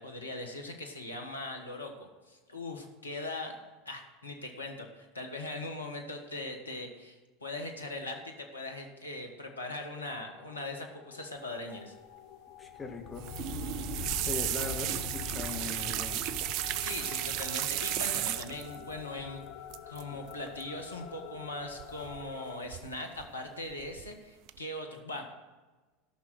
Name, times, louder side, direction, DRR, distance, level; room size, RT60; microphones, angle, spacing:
voice 1, 0.0-3.6 3.8-11.9 16.6-19.4 19.9-25.2, left 2 dB, 90° left, 3 dB, 1.4 m, -40 dB
sound 1, 9.5-22.6, left 7 dB, 55° left, 1.0 m, -44 dB
voice 2, 12.6-13.3 14.2-16.3, left 3 dB, 20° left, 3 dB, 1.6 m, -40 dB
sound 2, 13.2-18.8 19.7-20.0 20.3-20.6 21.8-22.4 22.7-23.3 23.7-24.1 24.5-24.6, right 14 dB, 55° right, 0.4 m, -34 dB
13.0 x 6.1 x 8.0 m, 1.3 s
figure-of-eight pair, 80°, 0 cm